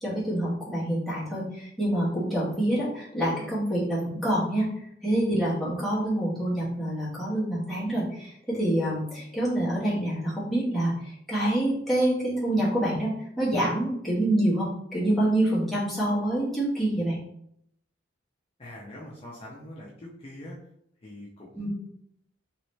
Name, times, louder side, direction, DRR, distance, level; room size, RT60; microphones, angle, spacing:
voice 1, 0.0-4.6 5.0-17.2 21.6-21.7, right 1 dB, ahead, -8 dB, 1.2 m, -26 dB
voice 2, 18.6-20.6 21.0-21.7, left 1 dB, 30° left, -5 dB, 0.6 m, -43 dB
3.0 x 3.0 x 3.1 m, 0.72 s
head